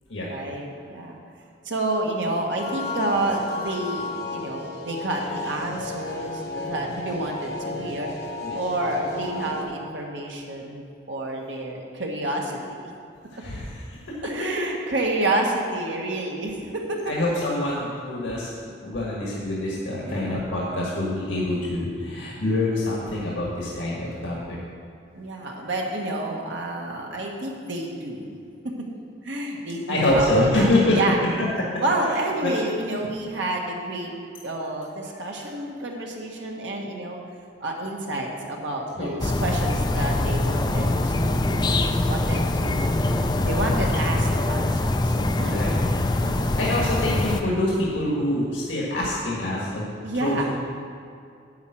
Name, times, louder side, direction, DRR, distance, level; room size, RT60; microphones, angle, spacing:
voice 1, 0.2-1.2 1.6-10.8 11.1-12.9 14.2-17.1 20.0-20.5 25.1-28.3 29.2-31.2 31.8-34.1 34.4-37.2 37.6-41.8 42.1-42.9 43.4-45.6 46.2-46.6 50.0-50.4, right 2 dB, 80° right, 0 dB, 1.4 m, -29 dB
sound 1, 2.6-9.6, left 3 dB, 55° left, 1.2 m, -33 dB
voice 2, 13.4-13.7 14.1-14.2 17.1-18.5 18.8-24.6 29.9-31.0 32.4-32.5 39.0-39.1 45.4-45.9 46.6-49.9 50.2-50.4, left 1 dB, 80° left, -4 dB, 1.6 m, -25 dB
sound 2, 39.2-47.4, left 2 dB, 20° left, 0.4 m, -23 dB
10.5 x 4.4 x 7.7 m, 2.3 s
head